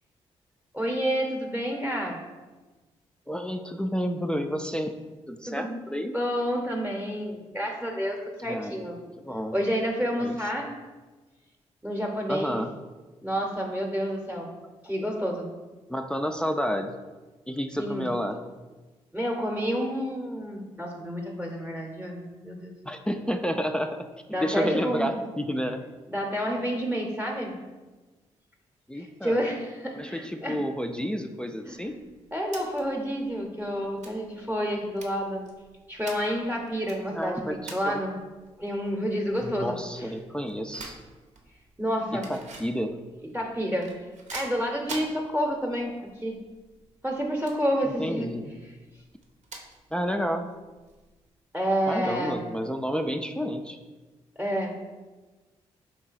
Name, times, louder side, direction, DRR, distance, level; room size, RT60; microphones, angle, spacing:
voice 1, 0.7-2.2 5.5-5.8 6.1-9.0 9.5-10.7 11.8-12.6 13.2-14.5 14.8-15.5 17.8-18.1 19.1-22.7 24.3-25.1 26.1-27.5 29.0-30.6 31.7-32.0 32.3-35.4 35.9-38.2 38.6-40.1 41.8-42.3 43.3-43.9 44.3-46.4 47.0-48.3 51.5-52.4 54.4-54.8, equal, 10° right, 1 dB, 0.8 m, -29 dB
voice 2, 3.3-4.9 5.3-6.1 8.5-8.9 9.2-9.5 10.2-10.4 12.3-12.7 15.9-17.0 17.5-18.4 22.9-24.1 24.4-25.8 28.9-29.4 30.0-31.9 37.1-37.6 37.8-38.0 39.4-41.0 42.1-43.0 48.0-48.5 49.9-50.5 51.9-53.8, equal, 5° left, 5 dB, 0.3 m, -30 dB
sound 1, 31.7-51.3, right 3 dB, 65° right, 0.7 m, -48 dB
3.8 x 2.7 x 4.0 m, 1.2 s
hypercardioid pair, 45°, 13 cm